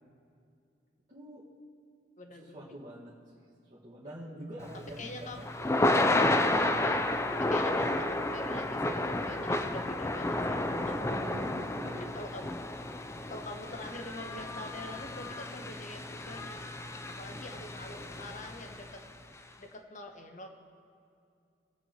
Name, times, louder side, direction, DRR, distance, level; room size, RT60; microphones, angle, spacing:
voice 1, 1.1-1.4 2.4-3.4 3.7-5.7 11.0-12.1 17.3-17.5 17.9-18.4, right 1 dB, 40° right, -9 dB, 1.7 m, -45 dB
voice 2, 2.2-2.7 5.0-5.5 6.8-7.0 7.4-11.0 12.0-12.6 13.3-16.8 17.2-19.0 19.6-20.5, left 2 dB, 45° left, 4 dB, 1.1 m, -45 dB
Thunder / Rain, 4.7-18.9, left 2 dB, 15° left, 0.5 m, -31 dB
19.5 x 7.8 x 3.0 m, 2.5 s
head